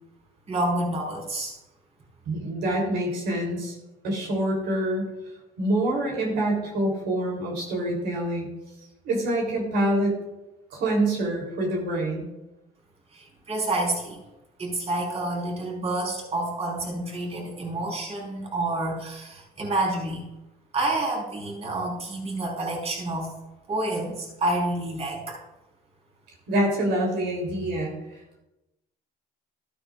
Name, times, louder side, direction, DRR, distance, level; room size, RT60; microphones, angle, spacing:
voice 1, 0.5-1.6 13.1-14.2 14.6-20.2 20.7-23.3 23.7-25.4, right 2 dB, 35° right, -2 dB, 4.4 m, -28 dB
voice 2, 2.3-3.8 4.0-8.5 9.0-10.2 10.7-12.3 26.5-28.4, right 1 dB, 80° right, -1 dB, 3.5 m, -26 dB
13.5 x 11.5 x 2.5 m, 0.97 s
cardioid pair, 110°, 17 cm